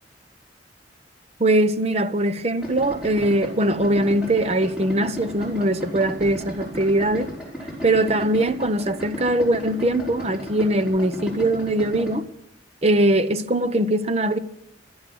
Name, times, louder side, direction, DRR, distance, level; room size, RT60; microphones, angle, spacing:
voice 1, 1.4-7.3 7.8-12.3 12.8-14.4, right 1 dB, 35° right, 0.8 m, -21 dB
Idling, 2.6-12.2, equal, 5° right, 5.2 m, -35 dB
19.0 x 12.0 x 6.2 m
head